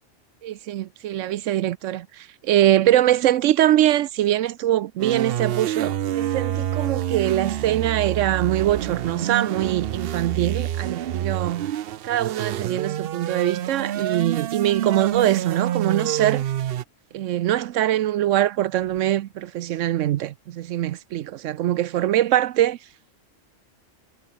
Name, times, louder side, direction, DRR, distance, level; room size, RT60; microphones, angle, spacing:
voice 1, 0.4-11.7 12.0-16.4 17.1-22.8, right 12 dB, 80° right, 0.9 m, -23 dB
sound 1, 5.0-16.8, right 11 dB, 60° right, 0.7 m, -27 dB
sound 2, 6.7-7.3 10.2-11.3 14.6-16.0 16.5-16.7 18.7-19.2, left 2 dB, 60° left, 4.1 m, -52 dB
omnidirectional pair, 1.3 m